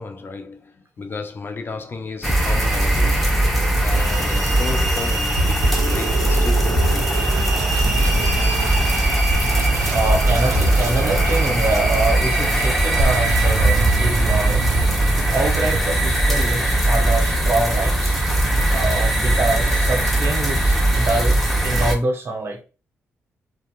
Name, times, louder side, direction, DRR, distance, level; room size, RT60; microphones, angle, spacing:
voice 1, 0.0-3.3 3.8-7.3, left 4 dB, 40° left, 0.5 m, -33 dB
sound 1, 2.2-21.9, right 1 dB, ahead, 0.9 m, -19 dB
sound 2, 4.1-5.2 5.6-16.1, right 3 dB, 80° right, 0.4 m, -26 dB
sound 3, 4.7-5.9 6.7-7.3 8.9-9.4 10.5-11.2, left 2 dB, 85° left, 1.1 m, -27 dB
voice 2, 9.9-14.7 15.3-18.2 18.7-22.6, right 2 dB, 45° right, 0.8 m, -25 dB
2.7 x 2.2 x 2.3 m
supercardioid pair, 55°, 6 cm